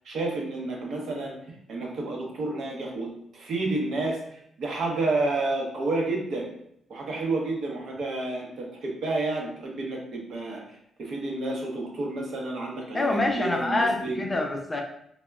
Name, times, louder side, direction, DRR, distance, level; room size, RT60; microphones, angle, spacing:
voice 1, 0.1-6.5 6.9-10.6 11.0-14.2, right 2 dB, 65° right, 0 dB, 0.6 m, -30 dB
voice 2, 12.9-14.8, left 2 dB, 20° left, 3 dB, 0.4 m, -26 dB
3.4 x 2.0 x 2.2 m, 0.72 s
cardioid pair, 110°, 0 cm